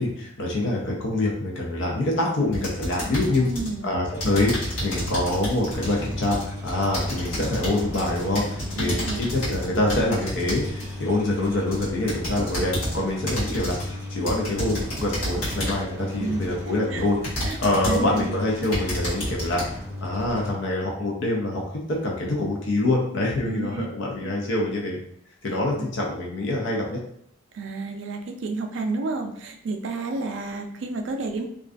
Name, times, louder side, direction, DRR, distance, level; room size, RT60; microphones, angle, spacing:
voice 1, 0.0-3.4 3.8-17.2 17.6-19.6 20.0-21.6 21.9-25.0 25.4-27.0, left 2 dB, 65° left, -2 dB, 0.5 m, -25 dB
sound 1, 2.5-3.8 4.2-10.9 11.4-13.0 13.3-13.9 14.3-15.9 16.5-16.6 17.2-18.2 18.6-19.6, equal, 90° left, 1.1 m, -31 dB
voice 2, 3.4-3.9 8.8-9.3 16.2-16.4 16.9-17.1 17.4-17.6 17.8-18.3 23.4-23.9 24.2-24.3 25.5-25.9 27.5-31.4, right 3 dB, 65° right, 5 dB, 0.3 m, -31 dB
sound 2, 4.1-20.5, left 1 dB, 10° right, 0.6 m, -36 dB
2.4 x 2.3 x 2.4 m, 0.72 s
head